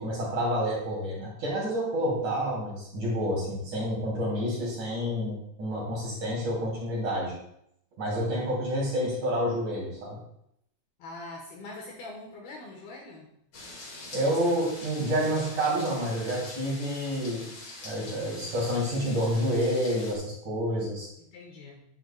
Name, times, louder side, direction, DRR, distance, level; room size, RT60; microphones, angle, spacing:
voice 1, 0.0-7.3 8.0-10.2 14.1-17.5 17.8-21.1, equal, 45° right, -4 dB, 4.1 m, -29 dB
voice 2, 11.0-13.3 21.2-21.8, left 2 dB, 70° left, -1 dB, 2.7 m, -43 dB
sound 1, 13.5-20.1, left 2 dB, 45° left, 1.8 m, -44 dB
10.5 x 10.5 x 2.3 m, 0.75 s
omnidirectional pair, 5.4 m